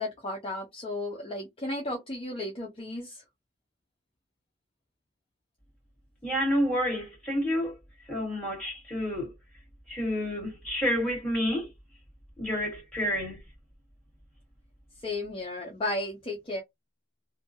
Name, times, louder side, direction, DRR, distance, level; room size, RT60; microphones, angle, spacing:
voice 1, 0.0-3.2 15.0-16.6, left 2 dB, 30° left, 0.6 m, -34 dB
voice 2, 6.2-7.7 8.1-9.3 9.9-11.7 12.4-13.4, equal, 5° left, 1.7 m, -29 dB
2.5 x 2.2 x 2.7 m
head